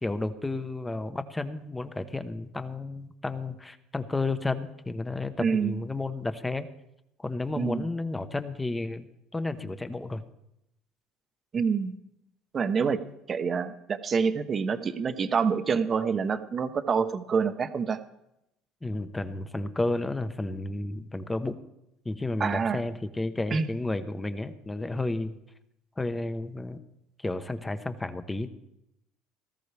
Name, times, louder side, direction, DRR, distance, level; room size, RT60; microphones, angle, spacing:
voice 1, 0.0-6.7 7.2-9.1 9.3-10.2 18.8-21.6 22.0-25.4 26.0-26.8 27.2-28.5, left 2 dB, 15° left, 10 dB, 1.1 m, -32 dB
voice 2, 5.4-5.8 7.6-7.8 11.5-12.0 12.5-13.0 13.3-18.0 22.4-22.8 23.5-23.7, right 6 dB, 35° right, 10 dB, 1.1 m, -27 dB
18.0 x 14.0 x 3.5 m, 0.84 s
supercardioid pair, 85°, 0 cm